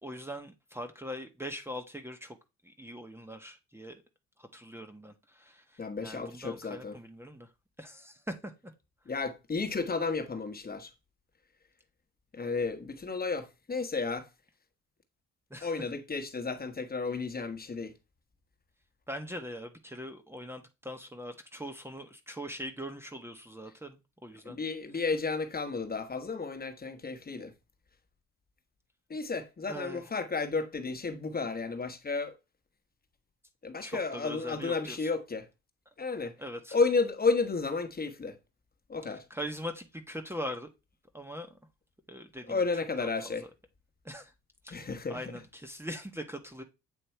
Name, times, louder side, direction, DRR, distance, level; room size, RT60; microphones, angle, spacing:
voice 1, 0.0-2.4 2.6-4.0 4.4-7.5 7.8-8.5 15.5-15.7 19.1-24.0 24.2-24.6 29.7-30.0 33.8-35.1 36.4-36.7 39.1-40.7 41.1-41.5 42.1-42.6 43.2-43.3 44.0-44.3 44.6-46.6, equal, 10° right, 1.0 m, -41 dB
voice 2, 5.8-7.0 9.1-10.9 12.3-14.3 15.6-17.9 24.4-27.5 29.1-32.3 33.6-35.5 36.0-36.3 36.7-38.4 38.9-39.2 42.5-43.5 44.7-45.4, left 4 dB, 30° left, 1.2 m, -32 dB
8.3 x 3.0 x 4.4 m
cardioid pair, 90°, 30 cm